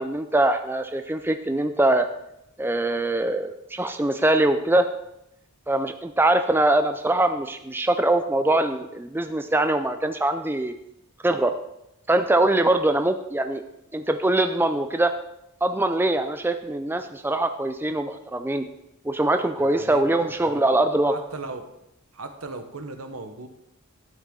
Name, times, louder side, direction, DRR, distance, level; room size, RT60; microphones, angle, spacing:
voice 1, 0.0-2.1 2.6-4.9 5.7-10.7 11.2-11.5 12.1-13.6 13.9-15.1 15.6-18.6 19.0-21.1, right 2 dB, 10° right, 8 dB, 0.4 m, -22 dB
voice 2, 19.6-20.8 21.1-21.7 22.1-23.5, right 3 dB, 75° right, 7 dB, 1.1 m, -38 dB
12.0 x 9.0 x 3.9 m, 0.83 s
head